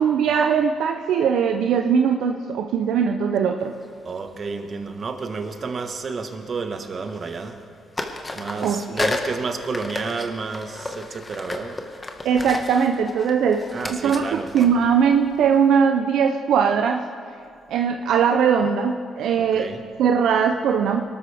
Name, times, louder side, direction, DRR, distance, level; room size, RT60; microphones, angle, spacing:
voice 1, 0.0-3.7 8.6-8.8 12.2-13.6 13.9-17.0 17.7-19.7 20.0-21.0, right 7 dB, 75° right, 5 dB, 0.6 m, -20 dB
sound 1, 3.8-4.0 5.4-6.7 6.9-7.7 7.9-15.7, left 2 dB, 25° left, 1.6 m, -33 dB
voice 2, 4.0-7.6 8.3-11.8 13.7-14.7 19.3-19.8, right 4 dB, 50° right, 7 dB, 1.4 m, -31 dB
23.0 x 12.5 x 3.5 m, 2.4 s
supercardioid pair, 65°, 0 cm